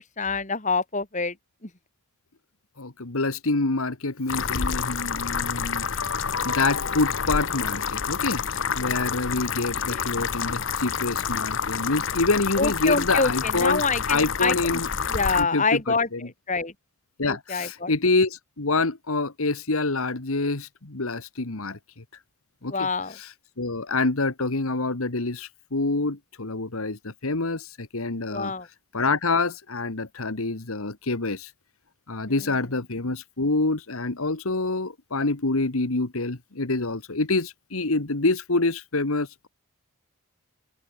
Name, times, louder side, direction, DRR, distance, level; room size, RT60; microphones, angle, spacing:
voice 1, 0.0-1.4 1.6-1.7 9.9-10.1 12.6-14.8 15.1-16.7 17.2-17.9 22.6-23.2 28.3-28.7 32.3-32.6, left 4 dB, 35° left, 2.7 m, -26 dB
voice 2, 2.8-13.8 14.1-14.9 15.4-16.2 17.2-21.8 22.6-22.9 23.2-23.3 23.6-28.5 28.9-31.5 32.1-39.5, left 3 dB, 75° left, 1.6 m, -26 dB
sound 1, 4.3-15.4, left 6 dB, 55° left, 0.8 m, -28 dB
head